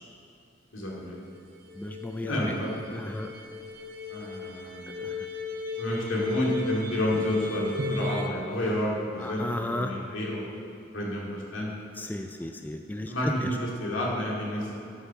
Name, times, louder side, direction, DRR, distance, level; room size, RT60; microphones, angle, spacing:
voice 1, 0.7-1.2 2.3-2.7 4.1-5.0 5.8-10.4 10.9-11.7 13.1-14.7, equal, 80° left, -4 dB, 2.2 m, -30 dB
sound 1, 1.0-1.1 1.3-1.4 1.6-8.3, left 3 dB, 45° right, 0.7 m, -36 dB
voice 2, 1.8-2.3 2.9-3.3 5.0-5.1 9.2-9.9 12.0-13.3, left 1 dB, 10° left, 5 dB, 0.3 m, -34 dB
9.7 x 5.8 x 6.8 m, 2.6 s
head